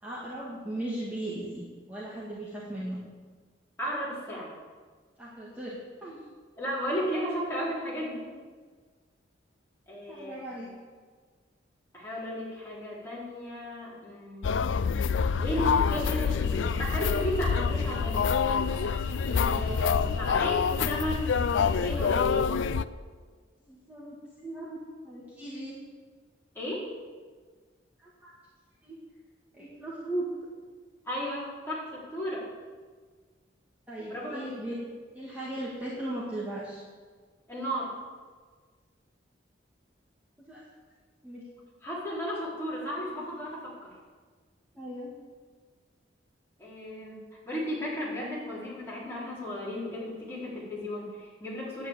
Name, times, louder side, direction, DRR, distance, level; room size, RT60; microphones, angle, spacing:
voice 1, 0.0-3.0 5.2-6.2 10.1-10.7 19.4-19.6 23.6-24.8 25.0-25.8 28.0-28.3 28.8-29.0 29.5-30.3 33.9-34.8 35.1-36.8 40.5-40.6 41.2-41.4 44.7-45.1, right 1 dB, 10° right, -8 dB, 2.1 m, -37 dB
voice 2, 3.8-4.5 6.6-8.3 9.9-10.7 11.9-14.6 15.4-18.4 19.3-22.7 26.5-26.9 31.0-32.5 34.1-34.5 37.5-37.9 41.8-43.9 46.6-51.9, equal, 15° left, -7 dB, 4.2 m, -34 dB
sound 1, 14.4-22.8, left 6 dB, 90° left, 0.4 m, -26 dB
sound 2, 16.4-21.9, left 5 dB, 55° left, 1.3 m, -47 dB
9.9 x 8.9 x 8.3 m, 1.5 s
head